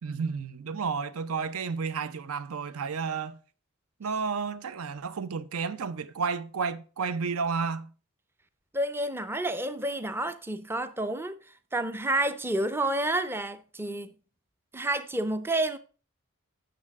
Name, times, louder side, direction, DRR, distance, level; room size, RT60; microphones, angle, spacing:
voice 1, 0.0-3.4 4.0-7.9, right 5 dB, 75° right, 0.5 m, -31 dB
voice 2, 8.7-11.4 11.7-14.1 14.7-15.8, right 1 dB, 10° right, 0.5 m, -29 dB
8.6 x 6.6 x 3.5 m
head